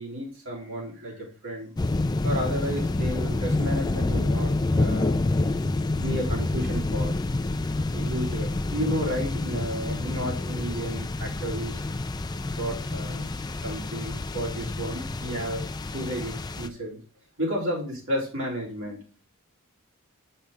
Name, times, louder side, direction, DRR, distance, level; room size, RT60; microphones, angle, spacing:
voice 1, 0.0-1.7 2.2-5.2 5.9-7.1 7.9-11.8 12.6-13.3 13.6-15.6 15.9-17.0 17.4-19.0, equal, 65° right, -2 dB, 3.3 m, -32 dB
sound 1, 1.8-16.7, left 2 dB, 20° left, 0.4 m, -28 dB
6.7 x 5.6 x 3.4 m, 0.38 s
head